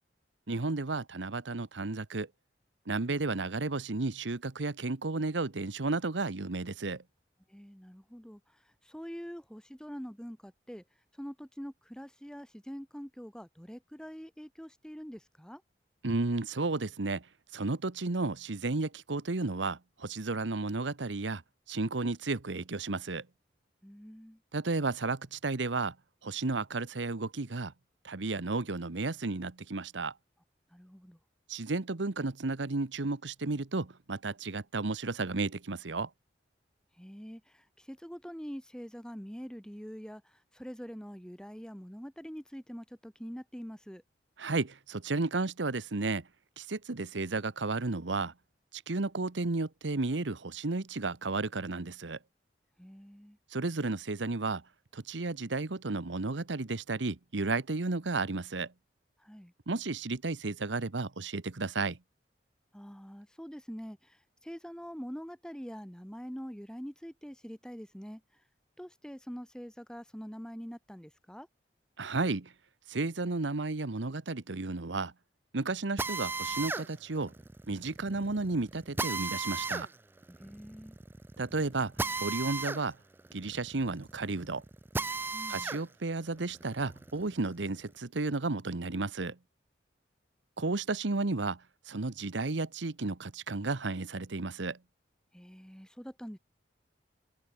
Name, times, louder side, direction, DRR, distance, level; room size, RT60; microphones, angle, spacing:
voice 1, 0.5-2.3 2.9-7.0 16.0-17.3 17.5-21.4 21.7-23.3 24.5-25.9 26.2-27.7 28.0-30.1 31.5-36.1 44.4-46.3 46.6-48.3 48.7-52.2 53.5-54.6 54.9-58.7 59.7-62.0 72.0-72.5 72.9-75.1 75.5-77.3 77.7-79.9 81.4-81.9 82.2-83.0 83.3-84.6 85.5-89.4 90.6-94.8, right 3 dB, 85° right, 1.1 m, -33 dB
voice 2, 7.5-8.4 8.8-10.8 11.2-15.6 23.8-24.4 30.7-31.2 37.0-44.0 52.8-53.4 59.2-59.5 62.7-68.2 68.8-71.5 80.4-81.0 85.3-85.8 95.3-96.4, equal, 5° left, 2.3 m, -45 dB
Drill, 76.0-85.8 86.3-87.9, right 3 dB, 10° right, 0.3 m, -36 dB
head